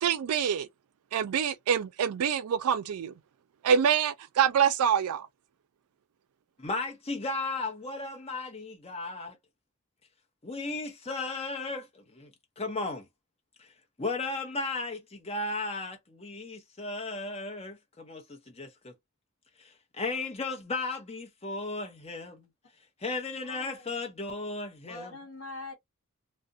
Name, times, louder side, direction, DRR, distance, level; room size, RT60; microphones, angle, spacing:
voice 1, 0.0-0.7 1.1-3.1 3.6-5.3, right 8 dB, 75° right, 0.4 m, -26 dB
voice 2, 6.6-9.4 10.4-12.3 12.6-13.0 13.6-13.7 14.0-18.9 19.6-22.5 23.0-25.1, left 3 dB, 25° left, 0.7 m, -35 dB
voice 3, 23.4-23.9 24.9-25.7, left 3 dB, 65° left, 0.9 m, -43 dB
2.4 x 2.1 x 2.6 m
head